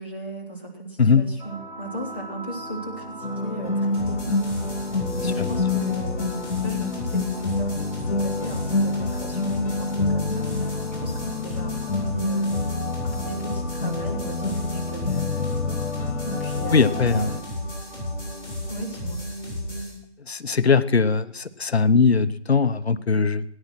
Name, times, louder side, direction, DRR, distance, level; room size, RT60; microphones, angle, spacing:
voice 1, 0.0-4.4 5.2-12.5 13.0-15.3 16.2-17.4 18.7-19.2, right 2 dB, 10° right, -4 dB, 0.8 m, -36 dB
sound 1, 1.4-19.9, equal, 40° right, 4.4 m, -41 dB
sound 2, 3.2-17.4, left 3 dB, 90° left, 1.3 m, -27 dB
sound 3, 3.9-19.9, left 1 dB, 15° left, 6.7 m, -34 dB
voice 2, 16.7-17.3 20.3-23.4, left 5 dB, 65° left, 13 dB, 0.8 m, -20 dB
17.5 x 9.8 x 6.1 m, 0.72 s
figure-of-eight pair, 170°, 34 cm